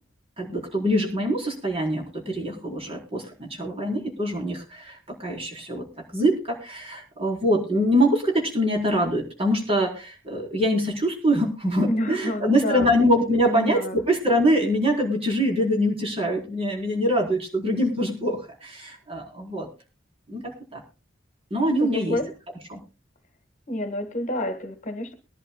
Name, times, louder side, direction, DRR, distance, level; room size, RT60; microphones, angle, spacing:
voice 1, 0.4-5.8 6.1-19.7 20.3-20.8 21.5-22.2 22.7-22.8, equal, 30° right, 0 dB, 4.4 m, -24 dB
voice 2, 11.9-12.9 13.4-14.0 21.8-22.3 23.7-25.1, left 1 dB, 40° left, 8 dB, 1.6 m, -29 dB
23.0 x 11.0 x 2.3 m, 0.30 s
head